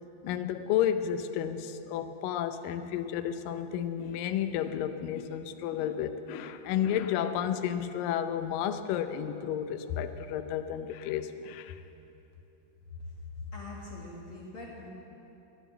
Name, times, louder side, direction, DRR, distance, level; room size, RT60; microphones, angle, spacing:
voice 1, 0.2-11.8, left 9 dB, 85° left, 8 dB, 1.9 m, -32 dB
voice 2, 13.4-14.9, left 3 dB, 70° left, -4 dB, 1.2 m, -42 dB
13.0 x 11.5 x 8.0 m, 3.0 s
omnidirectional pair, 4.8 m